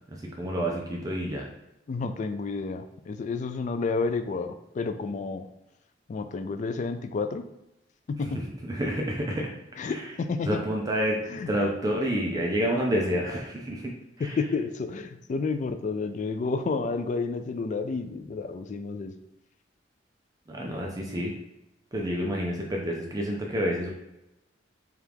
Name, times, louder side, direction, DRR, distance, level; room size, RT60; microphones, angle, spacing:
voice 1, 0.1-1.5 8.7-9.5 9.8-10.0 10.4-13.9 14.2-14.4 20.5-21.3 21.9-23.9, equal, 20° right, -1 dB, 0.5 m, -29 dB
voice 2, 1.9-5.5 6.1-7.4 8.1-8.4 9.8-10.6 11.3-11.5 14.2-19.1, left 4 dB, 40° left, 9 dB, 0.3 m, -30 dB
4.5 x 2.4 x 3.4 m, 0.91 s
head